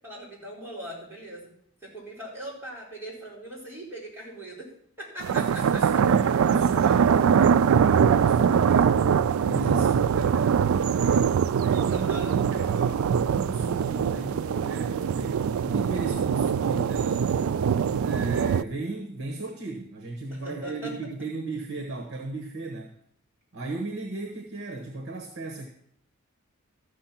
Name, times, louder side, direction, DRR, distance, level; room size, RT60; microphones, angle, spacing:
voice 1, 0.0-1.5 1.8-4.7 5.0-5.8 11.9-12.4 20.3-20.9, right 1 dB, 10° right, -6 dB, 4.5 m, -40 dB
sound 1, 5.2-18.6, right 7 dB, 80° right, 0.3 m, -23 dB
voice 2, 5.3-9.0 9.4-17.3 18.0-22.9 23.5-25.7, right 2 dB, 60° right, 2 dB, 1.3 m, -36 dB
14.0 x 6.5 x 5.9 m, 0.68 s
head